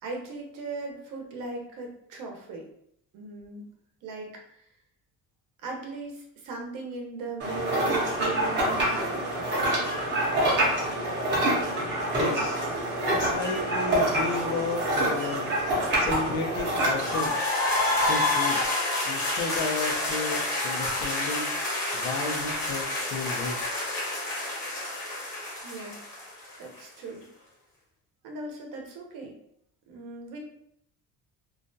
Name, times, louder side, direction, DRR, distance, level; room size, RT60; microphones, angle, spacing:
voice 1, 0.0-2.6 3.1-3.7 4.0-4.6 5.6-9.7 25.6-26.0 26.6-27.3 28.2-29.3 29.9-30.4, right 3 dB, 75° right, 1 dB, 0.7 m, -38 dB
sound 1, 7.4-17.3, right 1 dB, 35° right, 0.6 m, -26 dB
voice 2, 11.3-11.6 12.1-12.7 13.1-15.5 16.0-17.5 18.0-18.6 19.0-21.5 21.9-23.6, left 4 dB, 90° left, 2 dB, 0.6 m, -33 dB
sound 2, 17.0-26.8, left 2 dB, 60° left, 1.0 m, -28 dB
2.4 x 2.1 x 2.6 m, 0.71 s
cardioid pair, 180°, 33 cm